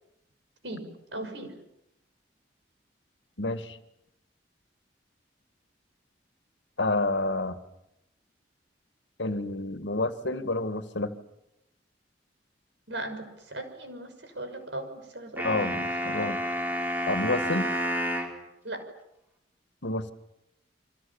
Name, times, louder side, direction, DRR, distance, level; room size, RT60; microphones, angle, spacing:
voice 1, 0.6-1.6 12.9-15.8 18.6-18.8, right 1 dB, 85° right, 8 dB, 6.0 m, -38 dB
voice 2, 3.4-3.8 6.8-7.6 9.2-11.1 15.4-16.4 17.1-17.7 19.8-20.1, left 2 dB, 85° left, 9 dB, 2.0 m, -29 dB
sound 1, 15.4-18.4, equal, 10° right, 4.5 m, -30 dB
28.5 x 25.0 x 7.2 m, 0.84 s
head